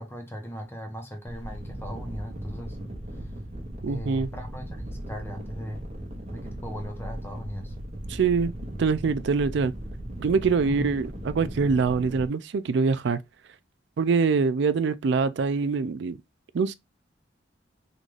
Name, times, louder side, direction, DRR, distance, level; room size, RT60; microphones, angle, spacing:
voice 1, 0.0-2.8 3.9-5.8 6.3-7.7 10.6-10.9, equal, 10° left, 0.9 m, -38 dB
sound 1, 1.3-12.3, equal, 35° right, 1.0 m, -37 dB
voice 2, 3.8-4.3 8.1-8.5 8.8-9.7 10.2-13.2 14.0-16.2 16.5-16.7, right 5 dB, 65° right, 0.4 m, -24 dB
3.8 x 2.5 x 3.2 m
head